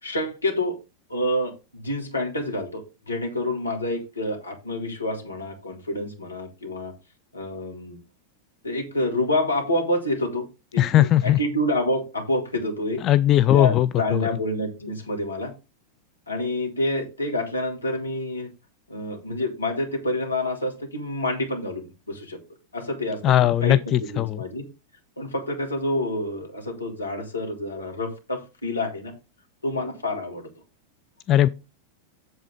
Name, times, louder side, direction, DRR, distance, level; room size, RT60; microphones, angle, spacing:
voice 1, 0.0-0.7 1.1-6.9 7.3-8.0 8.6-10.5 10.7-13.0 13.5-15.5 16.3-18.5 18.9-22.4 22.7-23.3 23.6-24.7 25.2-29.1 29.6-30.5, left 1 dB, 80° left, 2.3 m, -28 dB
voice 2, 10.8-11.4 13.0-14.3 23.2-24.4 31.3-31.5, left 12 dB, 35° left, 0.4 m, -19 dB
8.2 x 7.3 x 3.6 m
figure-of-eight pair, 90°, 0 cm